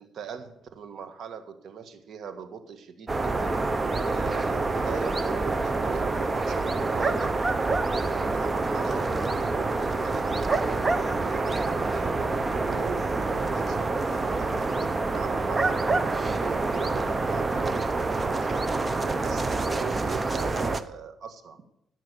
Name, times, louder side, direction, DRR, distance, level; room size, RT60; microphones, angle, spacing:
voice 1, 0.0-3.6 4.0-7.3 7.9-10.6 11.3-15.8 16.2-18.7 19.1-21.6, right 6 dB, 65° right, 9 dB, 1.6 m, -40 dB
sound 1, 3.1-20.8, right 3 dB, 25° right, 0.9 m, -27 dB
14.5 x 6.2 x 8.3 m, 0.78 s
cardioid pair, 90°, 0 cm